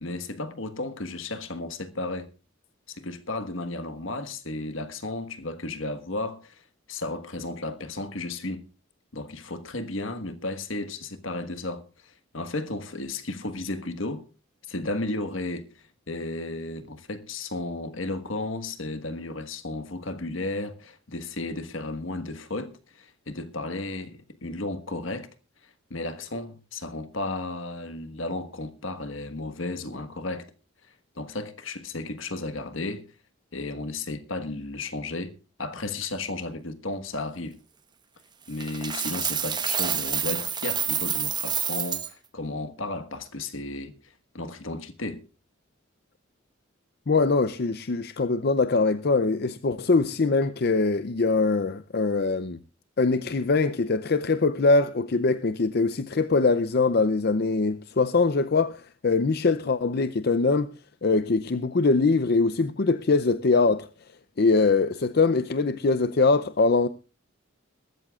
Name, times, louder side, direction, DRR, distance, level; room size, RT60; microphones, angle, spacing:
voice 1, 0.0-2.3 2.9-6.6 6.9-8.6 9.1-14.2 14.7-25.3 25.9-30.5 31.1-33.0 33.5-37.6 38.5-43.9 44.3-45.2, left 2 dB, 70° left, 1.5 m, -34 dB
Coin (dropping), 38.6-42.1, right 8 dB, 20° right, 1.0 m, -28 dB
voice 2, 47.1-52.6 53.0-60.7 61.0-63.9 64.4-66.9, left 3 dB, 50° left, 0.5 m, -23 dB
22.0 x 13.5 x 2.4 m
head